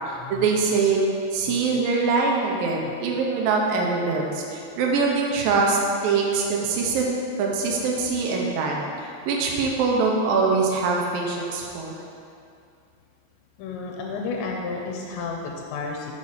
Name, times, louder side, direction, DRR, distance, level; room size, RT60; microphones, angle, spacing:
voice 1, 0.1-1.0 1.3-5.8 6.0-7.1 7.4-8.8 9.3-11.9, right 4 dB, 85° right, -1 dB, 2.0 m, -23 dB
voice 2, 13.6-16.1, left 4 dB, 85° left, 0 dB, 2.9 m, -32 dB
7.1 x 4.1 x 6.5 m, 2.5 s
omnidirectional pair, 5.1 m